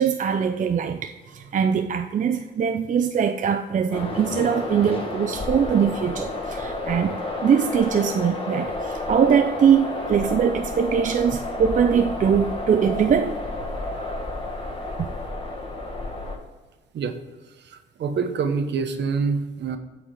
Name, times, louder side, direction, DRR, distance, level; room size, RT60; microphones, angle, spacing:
voice 1, 0.0-13.4 15.0-15.1, right 7 dB, 40° right, 7 dB, 0.5 m, -22 dB
sound 1, 3.9-16.4, left 2 dB, 25° left, 1.8 m, -31 dB
voice 2, 17.6-19.8, right 5 dB, 60° right, 8 dB, 1.1 m, -26 dB
8.9 x 4.9 x 4.5 m, 1.3 s
cardioid pair, 90°, 20 cm